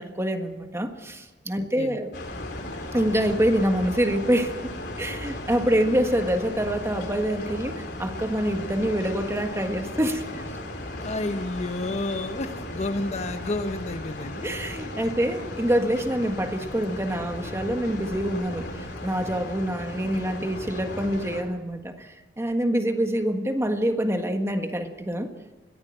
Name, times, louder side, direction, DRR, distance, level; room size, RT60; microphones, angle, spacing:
voice 1, 0.0-2.1 2.9-4.6 5.0-10.5 14.4-25.3, equal, 15° right, 6 dB, 1.6 m, -26 dB
sound 1, 2.1-21.4, left 1 dB, 65° left, 4.2 m, -36 dB
voice 2, 10.9-14.4, left 2 dB, 40° left, 9 dB, 1.0 m, -30 dB
21.5 x 15.5 x 8.9 m, 1.1 s
head